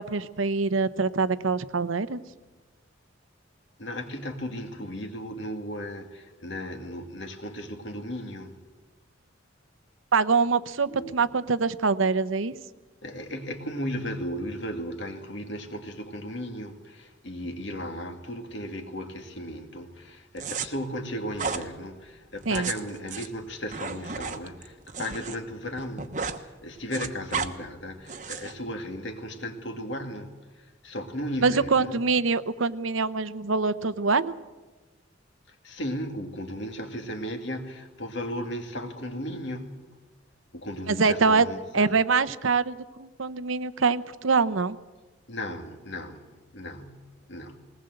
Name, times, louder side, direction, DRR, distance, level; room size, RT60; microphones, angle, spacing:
voice 1, 0.0-2.2 10.1-12.5 22.5-22.7 31.4-34.3 40.9-41.5 41.7-44.8, right 4 dB, 85° right, 0.8 m, -24 dB
voice 2, 3.8-8.6 10.9-11.3 13.0-32.0 35.5-39.9 40.5-41.9 45.3-47.6, equal, 65° left, 2.2 m, -36 dB
sound 1, 20.4-20.7 21.3-21.6 22.4-25.4 25.7-26.4 26.7-27.5 28.1-28.5, right 5 dB, 40° right, 1.1 m, -33 dB
20.5 x 19.0 x 7.9 m
head